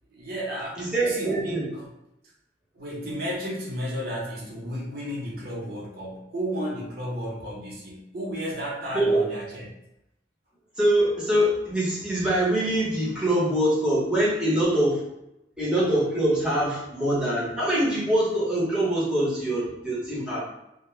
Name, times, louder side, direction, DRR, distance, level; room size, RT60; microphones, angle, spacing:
voice 1, 0.1-1.9 2.7-9.7, equal, 60° right, -4 dB, 0.8 m, -33 dB
voice 2, 0.8-1.6 8.9-9.2 10.8-15.0 15.6-20.4, right 1 dB, 5° right, -8 dB, 0.9 m, -24 dB
2.2 x 2.1 x 3.1 m, 0.86 s
head